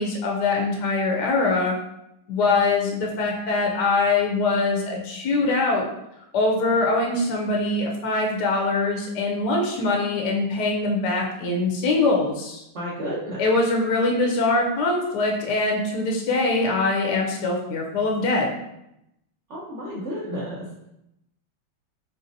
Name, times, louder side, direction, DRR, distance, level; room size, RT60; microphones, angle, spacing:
voice 1, 0.0-1.7 2.3-5.8 6.3-12.6 13.4-18.5, left 3 dB, 75° left, 0 dB, 1.0 m, -23 dB
voice 2, 12.7-13.4 19.5-20.6, equal, 80° right, -7 dB, 0.6 m, -31 dB
4.1 x 3.5 x 2.6 m, 0.84 s
omnidirectional pair, 2.4 m